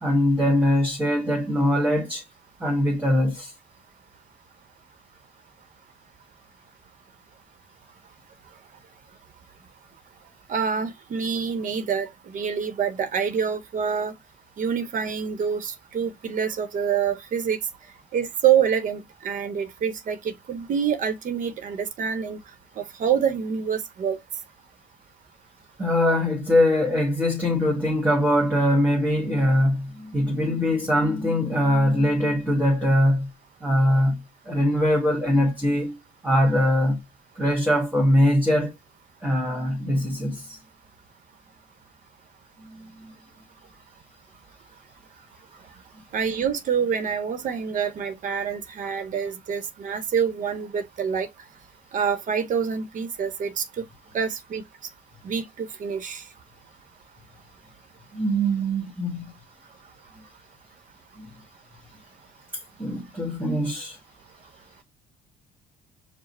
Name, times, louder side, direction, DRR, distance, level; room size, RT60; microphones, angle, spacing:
voice 1, 0.0-2.2 2.6-3.5 25.8-33.3 33.6-37.0 37.3-38.7 39.2-40.6 42.6-43.1 58.1-59.2 61.2-61.3 62.5-64.0, equal, 10° right, 1.5 m, -22 dB
voice 2, 10.5-14.1 14.6-17.6 18.1-22.4 22.8-24.2 46.1-51.3 51.9-53.8 54.1-54.6 55.2-56.2, right 7 dB, 50° right, 0.8 m, -26 dB
4.8 x 2.0 x 4.2 m
cardioid pair, 110°, 17 cm